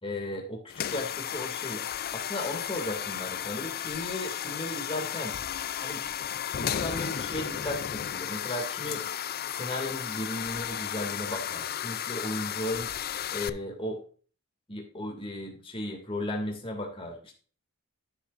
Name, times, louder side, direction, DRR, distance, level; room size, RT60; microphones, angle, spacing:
voice 1, 0.0-1.9 2.1-5.4 5.8-6.0 6.6-9.0 9.5-12.9 13.3-14.0 14.7-17.3, left 1 dB, 25° left, 1 dB, 2.5 m, -35 dB
sound 1, 0.7-13.5, left 9 dB, 45° left, 0.5 m, -34 dB
11.5 x 6.8 x 2.6 m, 0.40 s
head